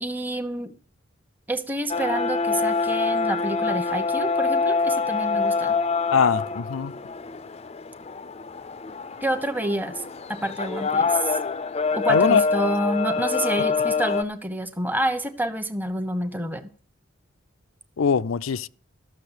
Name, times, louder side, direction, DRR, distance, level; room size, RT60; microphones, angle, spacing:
voice 1, 0.0-0.7 1.5-5.8 9.2-10.0 10.3-11.4 11.9-16.7, right 1 dB, 10° right, 1.0 m, -28 dB
sound 1, 1.9-14.2, left 4 dB, 30° left, 0.5 m, -25 dB
voice 2, 6.1-6.9 12.1-12.4 18.0-18.7, left 6 dB, 90° left, 0.5 m, -21 dB
13.5 x 6.5 x 8.2 m
head